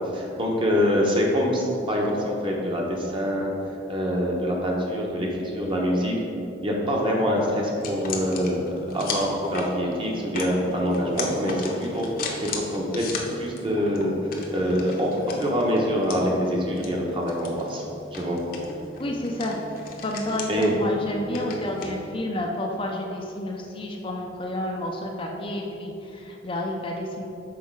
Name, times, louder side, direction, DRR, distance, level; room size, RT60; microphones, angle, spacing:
voice 1, 0.0-3.5 3.9-6.1 6.6-12.1 12.4-13.1 13.4-14.1 14.5-17.8 18.1-18.4 20.5-20.7, equal, 30° right, -2 dB, 1.0 m, -25 dB
sound 1, 7.8-22.0, left 3 dB, 50° left, 0.8 m, -37 dB
voice 2, 19.0-19.6 20.0-27.2, left 1 dB, 30° left, 0 dB, 0.5 m, -30 dB
6.3 x 4.6 x 4.6 m, 2.9 s
head